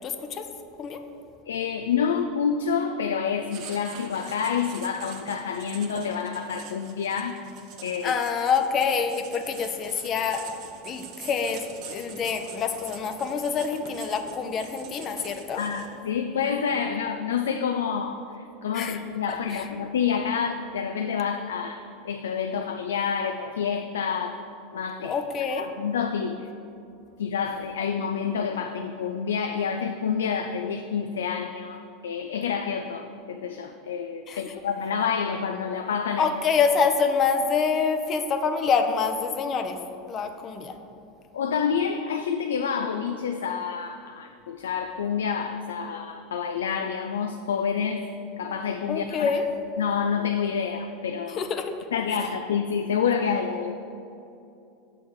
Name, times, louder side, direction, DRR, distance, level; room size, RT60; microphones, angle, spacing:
voice 1, 0.0-0.4 0.8-1.0 8.0-10.4 10.8-15.6 18.7-19.0 19.3-19.7 25.0-25.7 34.3-34.5 36.2-39.8 40.1-40.7 48.9-49.4 51.4-51.7, left 5 dB, 40° left, 6 dB, 0.6 m, -26 dB
voice 2, 1.5-7.4 7.8-8.2 15.6-24.4 24.7-25.1 25.6-26.5 27.2-36.3 41.3-48.0 48.4-49.3 49.8-51.4 51.9-53.8, left 6 dB, 90° left, 6 dB, 0.3 m, -28 dB
Writing, 3.5-16.1, right 6 dB, 55° right, 0.9 m, -44 dB
6.8 x 4.2 x 6.3 m, 2.7 s
hypercardioid pair, 100°, 0 cm